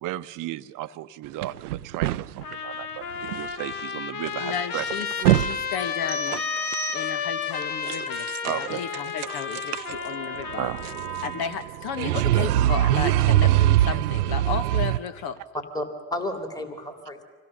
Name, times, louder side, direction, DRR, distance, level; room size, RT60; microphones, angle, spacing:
voice 1, 0.0-4.8 8.4-8.8 10.6-10.8, right 15 dB, 45° right, 13 dB, 0.8 m, -34 dB
sound 1, 1.4-2.5 3.2-3.5 3.7-3.8 4.3-4.4 4.8-5.6 5.8-5.9 6.3-6.7 7.9-8.7 8.9-15.0, right 14 dB, 85° right, 0.5 m, -23 dB
Trumpet, 2.4-11.6, left 6 dB, 80° left, 1.5 m, -32 dB
voice 2, 4.4-6.4 6.9-10.7 11.2-15.4, left 7 dB, 55° left, 11 dB, 1.3 m, -33 dB
sound 2, 6.1-7.6, right 8 dB, 20° right, 1.1 m, -37 dB
voice 3, 15.5-17.2, left 1 dB, 10° left, 5 dB, 2.6 m, -32 dB
26.0 x 17.0 x 6.5 m, 1.4 s
hypercardioid pair, 75°, 44 cm